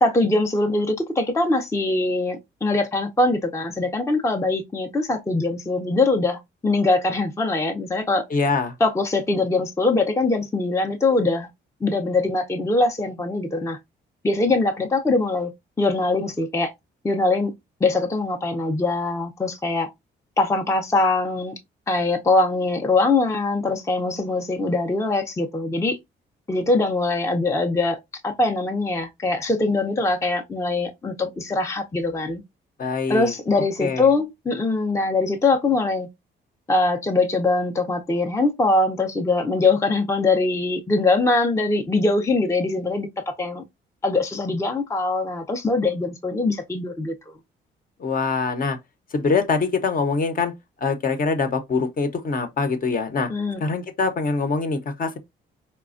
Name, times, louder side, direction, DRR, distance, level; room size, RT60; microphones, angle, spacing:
voice 1, 0.0-8.3 8.8-11.5 11.8-13.8 14.2-15.5 15.8-16.7 17.0-17.5 17.8-19.9 20.4-21.5 21.9-26.0 26.5-28.0 28.2-32.4 33.1-36.1 36.7-43.6 44.0-47.1 53.3-53.6, left 2 dB, 15° left, 0.5 m, -22 dB
voice 2, 8.3-8.7 32.8-33.3 33.8-34.1 48.0-48.8 49.1-50.5 50.8-53.3 53.6-55.2, left 4 dB, 45° left, 0.7 m, -24 dB
4.1 x 2.2 x 2.5 m
cardioid pair, 90°, 20 cm